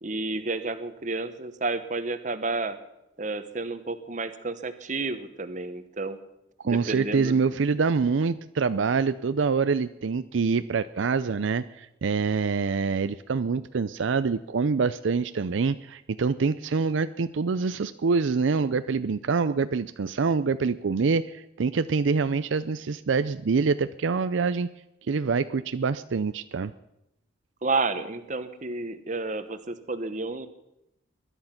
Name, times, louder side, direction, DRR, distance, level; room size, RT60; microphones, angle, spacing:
voice 1, 0.0-2.8 3.2-6.2 6.6-7.4 27.6-30.5, right 3 dB, 40° right, 10 dB, 1.1 m, -31 dB
voice 2, 6.6-24.7 25.1-26.7, right 5 dB, 75° right, 12 dB, 0.5 m, -25 dB
21.5 x 11.0 x 5.8 m, 0.87 s
head